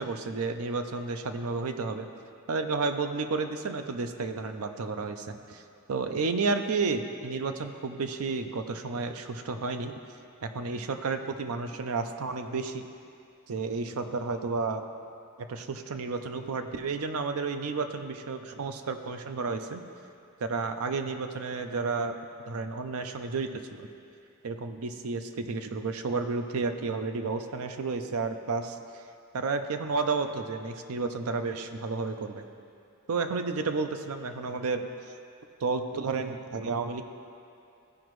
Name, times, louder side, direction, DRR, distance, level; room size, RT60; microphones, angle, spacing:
voice 1, 0.0-2.1 2.5-5.6 5.9-9.9 10.4-12.8 13.5-14.8 15.5-19.8 20.4-22.2 22.5-23.9 24.4-28.8 29.3-32.4 33.1-34.9 35.6-37.0, right 4 dB, 70° right, 7 dB, 0.5 m, -31 dB
14.5 x 5.0 x 3.1 m, 2.6 s
head